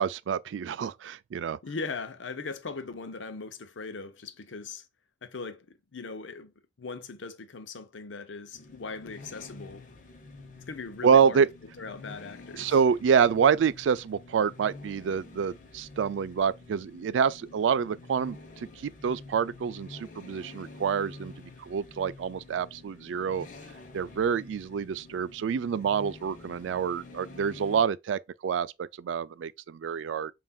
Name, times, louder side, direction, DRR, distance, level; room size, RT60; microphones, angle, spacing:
voice 1, 0.0-1.6 11.0-11.5 12.6-23.5 23.9-30.3, right 7 dB, 85° right, 0.3 m, -27 dB
voice 2, 1.6-4.9 5.2-6.5 6.8-9.9 10.7-11.4 11.8-12.8, left 4 dB, 90° left, 0.7 m, -39 dB
sound 1, 8.5-27.8, left 3 dB, 45° left, 0.8 m, -48 dB
5.5 x 2.6 x 2.3 m
head